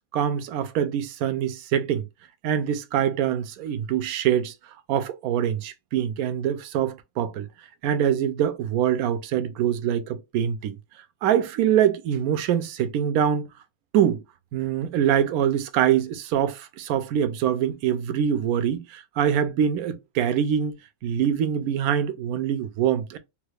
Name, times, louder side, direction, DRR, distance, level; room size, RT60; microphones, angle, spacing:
voice 1, 0.1-2.1 2.4-4.5 4.9-7.5 7.8-10.8 11.2-13.5 13.9-14.2 14.5-20.8 21.0-23.2, right 9 dB, 80° right, 1.0 m, -24 dB
3.3 x 2.3 x 3.2 m
omnidirectional pair, 1.5 m